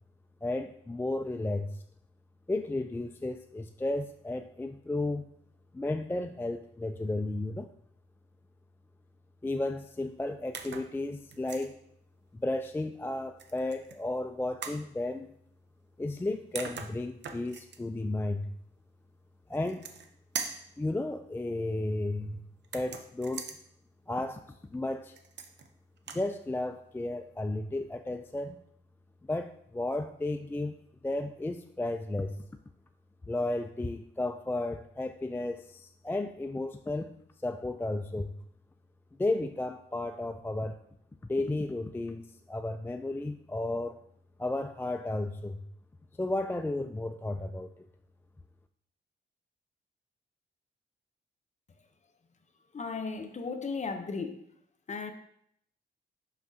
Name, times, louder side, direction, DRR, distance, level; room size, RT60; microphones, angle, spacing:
voice 1, 0.4-1.7 2.5-5.3 5.7-7.7 9.4-11.8 12.3-15.3 16.0-18.5 19.5-19.9 20.8-22.4 22.7-23.4 24.1-24.4 24.7-25.1 26.1-28.6 29.3-30.7 31.0-32.4 33.3-37.1 37.4-38.3 39.2-40.8 41.3-44.0 44.4-45.6 46.2-47.8, left 2 dB, 10° left, 8 dB, 0.3 m, -33 dB
sound 1, 10.5-10.9 11.3-11.7 13.4-14.0 14.6-14.8 16.2-16.3 16.6-17.8 19.5-20.1 20.4-20.7 22.6-23.6 25.2-25.7 26.0-26.3, right 6 dB, 65° right, 0.7 m, -40 dB
voice 2, 52.7-54.5 54.9-55.1, left 4 dB, 35° left, 7 dB, 0.7 m, -35 dB
5.9 x 5.8 x 2.8 m, 0.70 s
cardioid pair, 85°, 20 cm